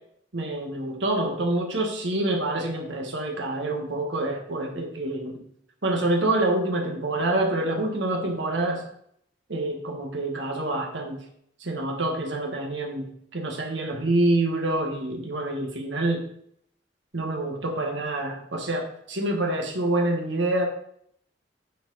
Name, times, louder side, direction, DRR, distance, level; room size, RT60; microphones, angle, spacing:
voice 1, 0.3-5.4 5.8-8.8 9.5-11.2 11.6-16.3 17.1-20.7, right 2 dB, 75° right, 2 dB, 1.5 m, -27 dB
9.1 x 4.5 x 4.1 m, 0.70 s
head